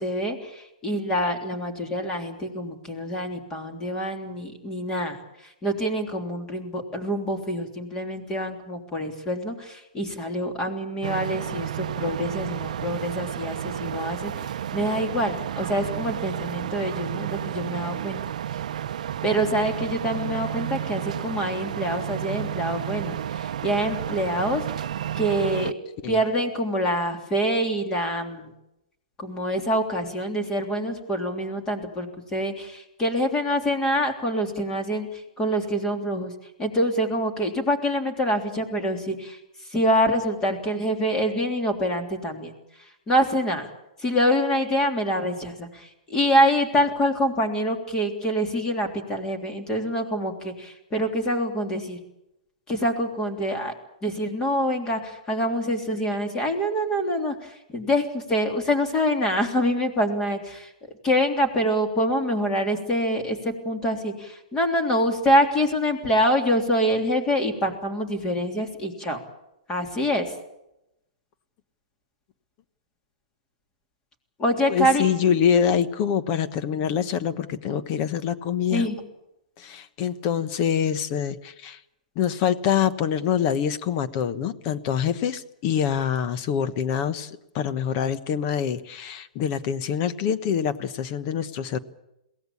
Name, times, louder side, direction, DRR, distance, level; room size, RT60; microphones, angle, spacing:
voice 1, 0.0-5.2 5.6-18.2 19.2-24.9 25.2-25.7 26.1-28.5 29.2-36.3 36.6-39.4 39.7-42.5 43.1-43.7 44.0-52.0 52.7-53.7 54.0-60.7 61.0-69.2 69.7-70.3 74.4-75.1 78.7-79.0, equal, 15° left, 5 dB, 3.3 m, -25 dB
sound 1, 11.0-25.7, right 10 dB, 65° right, 0.7 m, -31 dB
voice 2, 74.7-78.9 79.6-81.8 82.2-91.8, left 8 dB, 35° left, 13 dB, 1.1 m, -25 dB
22.5 x 17.0 x 8.5 m, 0.88 s
hypercardioid pair, 150°, 4 cm